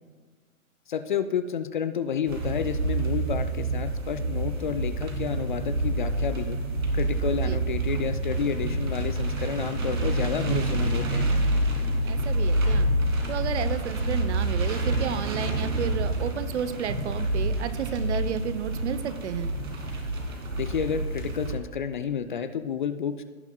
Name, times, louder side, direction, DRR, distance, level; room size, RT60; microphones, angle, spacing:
voice 1, 0.9-6.6 6.9-11.3 20.6-23.2, left 7 dB, 40° left, 11 dB, 0.4 m, -30 dB
sound 1, 2.3-21.6, right 2 dB, 75° right, 2.4 m, -27 dB
voice 2, 12.0-12.9 13.3-19.5, right 8 dB, 55° right, 12 dB, 0.8 m, -32 dB
16.5 x 7.0 x 2.3 m, 1.5 s
hypercardioid pair, 125°, 41 cm